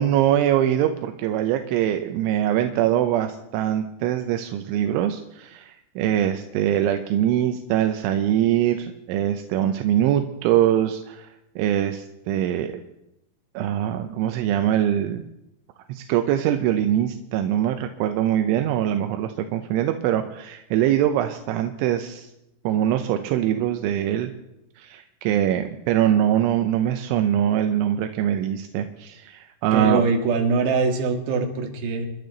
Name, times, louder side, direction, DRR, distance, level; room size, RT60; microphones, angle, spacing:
voice 1, 0.0-11.3 11.6-12.7 13.5-15.2 15.9-22.3 22.6-24.3 24.8-30.0, right 11 dB, 85° right, 7 dB, 3.2 m, -23 dB
voice 2, 29.7-32.1, right 4 dB, 65° right, 2 dB, 4.0 m, -22 dB
28.5 x 12.0 x 4.0 m, 0.89 s
omnidirectional pair, 5.4 m